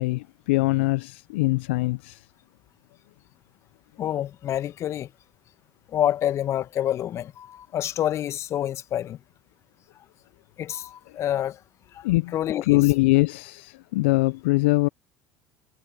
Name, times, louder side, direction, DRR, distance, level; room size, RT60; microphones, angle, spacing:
voice 1, 0.0-2.3 11.1-11.2 12.0-12.3 12.6-14.9, left 23 dB, 75° left, 0.6 m, -22 dB
voice 2, 4.0-5.1 5.9-9.2 10.6-11.6 11.9-12.0 12.3-12.8, left 11 dB, 50° left, 1.2 m, -27 dB
hypercardioid pair, 70°, 6 cm